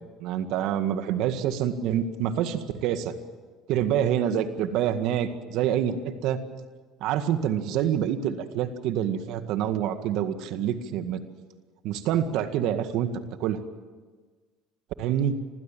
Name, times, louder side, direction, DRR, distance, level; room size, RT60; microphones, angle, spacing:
voice 1, 0.0-3.1 3.7-6.4 7.0-11.2 11.8-13.1 13.4-13.6 15.0-15.4, right 10 dB, 70° right, 9 dB, 1.9 m, -26 dB
26.0 x 16.0 x 9.0 m, 1.4 s
supercardioid pair, 100°, 0 cm